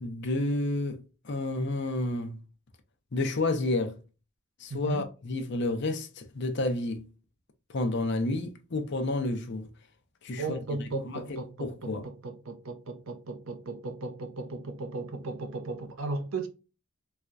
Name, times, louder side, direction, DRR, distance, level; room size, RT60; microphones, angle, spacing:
voice 1, 0.0-1.0 1.2-2.4 3.1-4.0 4.6-7.1 7.7-9.7 10.2-10.4 11.0-12.0, left 2 dB, 55° left, 0.7 m, -30 dB
voice 2, 4.7-5.1 10.4-16.5, right 3 dB, 70° right, 0.6 m, -36 dB
4.3 x 2.2 x 2.4 m
head